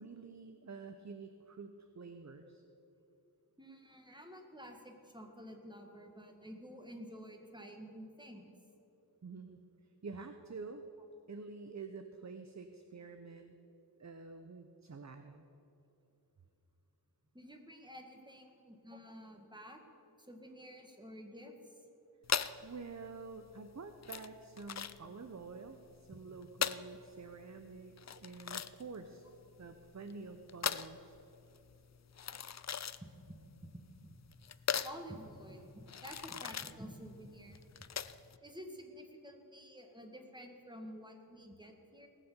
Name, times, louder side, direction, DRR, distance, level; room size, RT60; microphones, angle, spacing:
voice 1, 0.0-2.6 9.2-10.8 11.3-13.5 14.0-15.5 22.6-29.2 29.6-31.2 40.8-40.9, right 4 dB, 45° right, 7 dB, 0.7 m, -48 dB
voice 2, 3.6-8.5 17.3-19.8 20.1-21.8 33.0-34.2 34.8-37.9 38.4-42.1, equal, 10° right, 3 dB, 1.8 m, -51 dB
sound 1, 22.2-38.4, left 7 dB, 45° left, 0.4 m, -40 dB
19.0 x 7.1 x 6.8 m, 2.9 s
wide cardioid pair, 50°, 40 cm